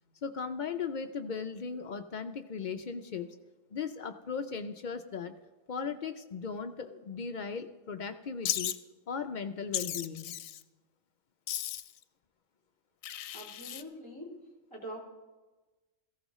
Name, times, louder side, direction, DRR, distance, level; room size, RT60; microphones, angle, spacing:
voice 1, 0.2-3.4 3.7-5.3 5.7-8.7 9.1-10.4, left 5 dB, 60° left, 8 dB, 0.5 m, -37 dB
Wild animals, 8.4-8.8 9.7-10.6 11.5-12.0 13.0-13.8, left 12 dB, 80° left, 1.0 m, -35 dB
voice 2, 13.3-14.3 14.7-15.0, equal, 20° left, -1 dB, 2.9 m, -43 dB
17.5 x 15.0 x 3.1 m, 1.2 s
omnidirectional pair, 1.4 m